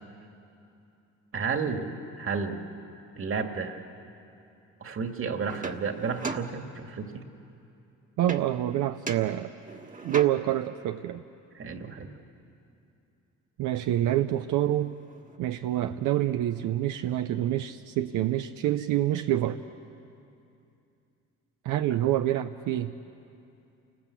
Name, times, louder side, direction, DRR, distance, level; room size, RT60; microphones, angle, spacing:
voice 1, 1.3-1.9 2.2-2.6 3.2-3.8 4.8-7.3 11.5-12.1, right 5 dB, 45° right, 5 dB, 2.1 m, -32 dB
sound 1, 5.5-7.1 8.3-8.7 9.1-10.7 14.0-14.1 14.3-15.4, right 3 dB, 25° right, 1.5 m, -39 dB
voice 2, 8.2-9.5 10.0-11.2 13.6-14.9 15.4-19.6 21.6-22.9, right 13 dB, 85° right, 8 dB, 0.7 m, -27 dB
28.5 x 19.5 x 8.4 m, 2.7 s
cardioid pair, 90°, 30 cm